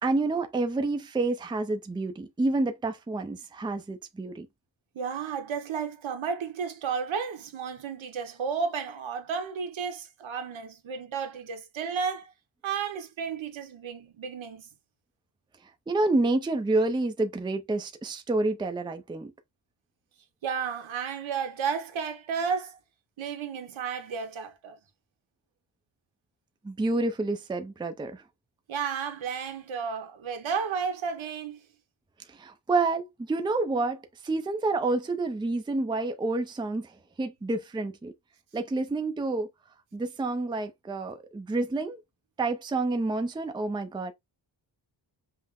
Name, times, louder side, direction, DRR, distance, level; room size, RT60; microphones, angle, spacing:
voice 1, 0.0-4.5 15.9-19.3 26.6-28.2 32.3-36.9 37.2-38.1 38.5-39.5 39.9-42.0 42.4-44.1, right 2 dB, 10° right, 0.5 m, -28 dB
voice 2, 4.9-12.3 12.6-14.7 20.4-22.8 23.2-24.8 28.7-31.6, right 6 dB, 80° right, 1.2 m, -32 dB
5.7 x 2.1 x 3.6 m
wide cardioid pair, 180°, 46 cm